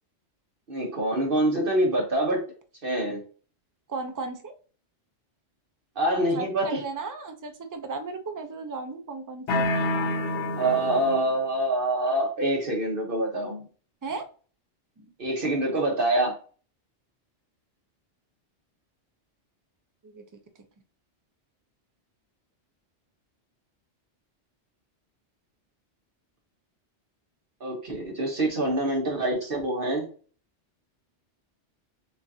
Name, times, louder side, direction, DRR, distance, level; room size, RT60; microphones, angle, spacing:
voice 1, 0.7-2.4 2.8-3.2 6.0-6.8 10.6-13.6 15.2-16.3 27.6-30.1, right 1 dB, 50° right, 1.2 m, -25 dB
voice 2, 3.9-4.5 6.3-9.8 14.0-14.2 15.0-15.1 20.0-20.2, right 4 dB, 30° right, 0.3 m, -35 dB
sound 1, 9.5-11.4, left 2 dB, 75° left, 1.0 m, -28 dB
6.6 x 2.5 x 2.7 m
omnidirectional pair, 1.2 m